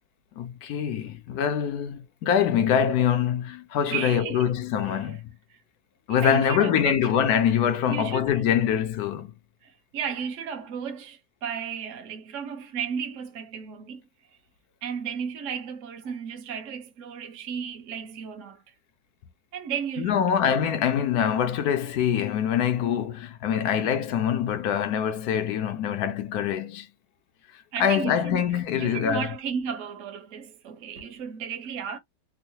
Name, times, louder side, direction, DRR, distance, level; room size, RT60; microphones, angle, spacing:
voice 1, 0.4-5.2 6.1-9.3 20.0-26.9 27.8-29.3, left 8 dB, 70° left, 1.0 m, -24 dB
voice 2, 3.9-4.5 4.8-5.2 5.5-5.6 6.1-7.1 7.9-8.4 9.6-14.0 14.8-18.6 19.5-20.2 27.7-28.4 28.8-32.0, right 7 dB, 55° right, 1.0 m, -34 dB
3.7 x 2.0 x 2.7 m
omnidirectional pair, 1.9 m